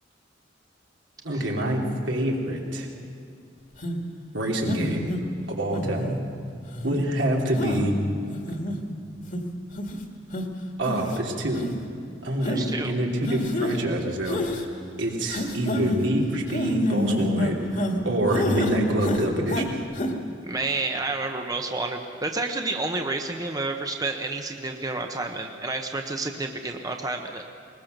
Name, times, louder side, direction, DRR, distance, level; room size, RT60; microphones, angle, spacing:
voice 1, 1.2-2.9 4.3-5.1 5.5-6.2 6.8-7.9 10.8-11.7 12.2-14.6 15.0-19.7, right 1 dB, 80° right, -1 dB, 3.2 m, -26 dB
sound 1, 3.8-4.0 4.6-5.2 5.7-6.2 6.7-7.0 7.6-7.8 8.3-8.8 9.3-9.4 9.8-10.0 10.3-10.4 10.8-11.2 11.6-11.7 12.4-12.6 13.3-13.8 14.3-14.6 15.3-16.0 16.5-18.0 18.3-18.7 19.0-19.7 19.9-20.1, left 1 dB, 45° left, 2.0 m, -28 dB
voice 2, 12.5-12.9 20.4-27.4, right 3 dB, 20° right, 4 dB, 1.0 m, -30 dB
21.5 x 20.5 x 6.7 m, 2.5 s
head